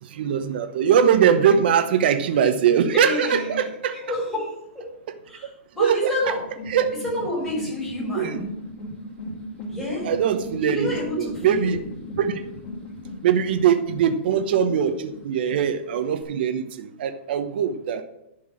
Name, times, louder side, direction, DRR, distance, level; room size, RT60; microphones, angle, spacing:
voice 1, 0.0-4.0 5.8-6.1 6.7-6.9 8.1-8.4 10.0-10.9 11.2-11.8 12.2-12.4 13.2-18.0, right 8 dB, 55° right, 8 dB, 0.9 m, -21 dB
voice 2, 2.9-4.9 5.3-6.4 7.0-8.6 9.7-10.1 10.6-11.8, left 1 dB, 5° left, -5 dB, 3.9 m, -29 dB
sound 1, 6.2-16.2, left 1 dB, 25° left, 2.3 m, -38 dB
11.0 x 4.7 x 7.3 m, 0.84 s
hypercardioid pair, 165°, 7 cm